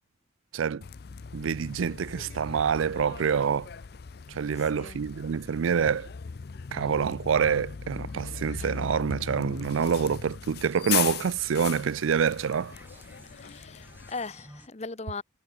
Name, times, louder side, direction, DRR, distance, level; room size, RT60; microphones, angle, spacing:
Bus, 0.8-14.1, left 8 dB, 50° left, 0.5 m, -38 dB
voice 1, 1.3-3.7 4.3-6.1 6.7-12.8, right 6 dB, 90° right, 0.4 m, -26 dB
sound 1, 1.9-14.0, right 2 dB, 70° right, 6.8 m, -64 dB
voice 2, 4.5-5.0 13.2-15.2, left 3 dB, 35° left, 0.9 m, -39 dB
sound 2, 9.5-14.7, right 1 dB, 10° right, 2.3 m, -55 dB
head